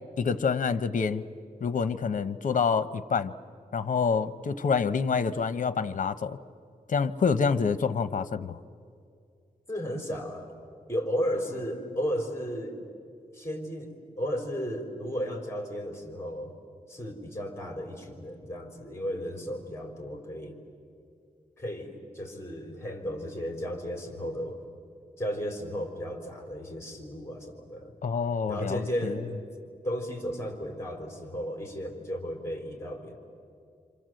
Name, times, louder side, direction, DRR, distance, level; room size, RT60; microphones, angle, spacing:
voice 1, 0.2-1.2 1.6-3.3 3.7-6.4 6.9-8.6 28.0-29.2, left 5 dB, 60° left, 13 dB, 0.9 m, -27 dB
voice 2, 9.7-10.5 10.9-12.8 13.3-16.5 16.9-20.6 21.6-24.6 25.2-27.9 28.5-29.3 29.8-33.2, equal, 20° left, 3 dB, 4.4 m, -34 dB
28.0 x 26.5 x 7.8 m, 2.4 s
wide cardioid pair, 95°, 15 cm